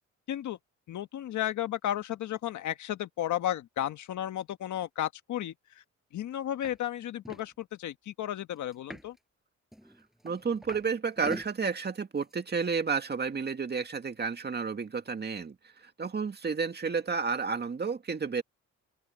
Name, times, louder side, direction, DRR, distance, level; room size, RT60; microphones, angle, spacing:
voice 1, 0.3-0.6 0.9-5.8 6.1-9.2, left 12 dB, 70° left, 1.5 m, -33 dB
sound 1, 6.6-6.8 7.0-7.5 8.7-9.2 9.7-10.9 11.2-11.5 12.2-12.3, equal, ahead, 5.8 m, -43 dB
voice 2, 10.2-18.4, right 5 dB, 35° right, 2.1 m, -31 dB
open air
cardioid pair, 90°, 30 cm